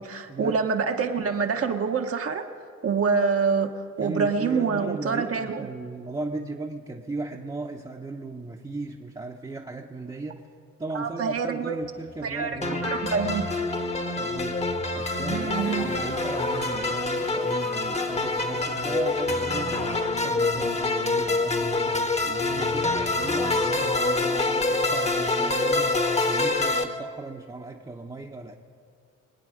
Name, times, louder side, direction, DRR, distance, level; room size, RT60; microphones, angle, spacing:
voice 1, 0.0-2.4 2.8-3.7 4.0-5.7 10.9-11.8 12.2-13.4 15.3-16.0, right 5 dB, 50° right, 4 dB, 1.1 m, -26 dB
voice 2, 4.0-10.4 10.8-12.9 14.2-14.6 14.9-28.6, right 3 dB, 15° right, -2 dB, 0.9 m, -37 dB
sound 1, 11.8-26.5, left 2 dB, 85° left, 4.0 m, -48 dB
sound 2, 12.6-26.8, left 2 dB, 20° left, 1.2 m, -26 dB
24.0 x 8.7 x 5.0 m, 2.3 s
cardioid pair, 90°, 30 cm